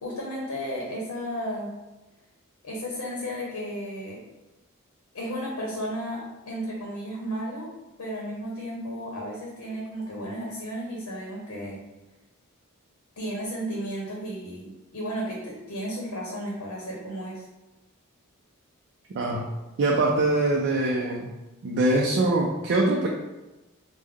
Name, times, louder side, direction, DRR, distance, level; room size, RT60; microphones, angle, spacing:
voice 1, 0.0-1.8 2.6-4.3 5.1-7.7 8.0-11.8 13.2-17.4, equal, 85° left, -2 dB, 0.7 m, -33 dB
voice 2, 19.1-19.5 19.8-21.3 21.6-23.1, right 2 dB, 55° right, -2 dB, 0.4 m, -23 dB
3.5 x 2.1 x 3.3 m, 1.1 s
head